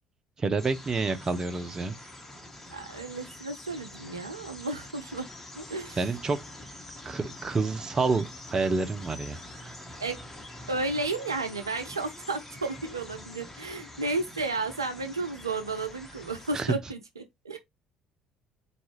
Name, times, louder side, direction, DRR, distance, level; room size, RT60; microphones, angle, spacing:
voice 1, 0.4-1.9 6.0-6.4 7.0-9.7 16.5-16.8, right 4 dB, 30° right, 0.6 m, -28 dB
sound 1, 0.6-16.7, left 1 dB, 15° left, 1.1 m, -45 dB
voice 2, 2.7-5.3 5.5-6.0 10.0-10.2 10.7-17.6, right 3 dB, 85° right, 0.4 m, -33 dB
4.1 x 2.3 x 3.0 m
figure-of-eight pair, 55°, 2 cm